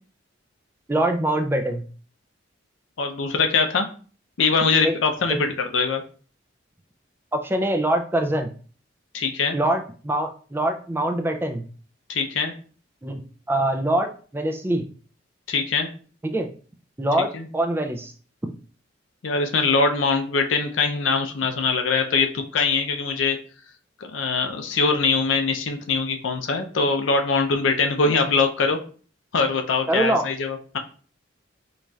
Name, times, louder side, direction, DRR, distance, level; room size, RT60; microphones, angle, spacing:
voice 1, 0.9-1.8 4.8-5.0 5.3-5.4 7.3-8.5 9.5-11.6 13.0-13.2 13.5-14.8 16.2-16.5 17.0-18.1 29.9-30.2, right 1 dB, 10° right, 5 dB, 0.3 m, -24 dB
voice 2, 3.0-3.9 4.4-6.0 9.1-9.6 12.1-12.5 15.5-15.9 17.3-17.5 19.2-23.4 24.0-28.8 29.3-30.8, left 4 dB, 90° left, 5 dB, 0.5 m, -22 dB
4.0 x 3.1 x 2.3 m, 0.41 s
head